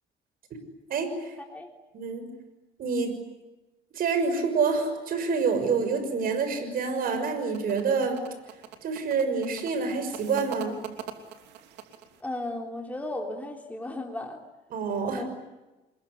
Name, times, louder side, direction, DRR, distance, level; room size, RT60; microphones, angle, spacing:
voice 1, 0.9-1.3 1.9-2.2 2.8-3.1 3.9-8.2 8.8-10.8 14.7-15.2, right 5 dB, 60° right, 8 dB, 6.4 m, -27 dB
sound 1, 7.0-12.2, right 9 dB, 85° right, 3.1 m, -43 dB
voice 2, 12.2-14.4 15.1-15.3, left 1 dB, 10° left, 1 dB, 3.5 m, -35 dB
27.5 x 21.5 x 9.8 m, 1.1 s
cardioid pair, 110°, 17 cm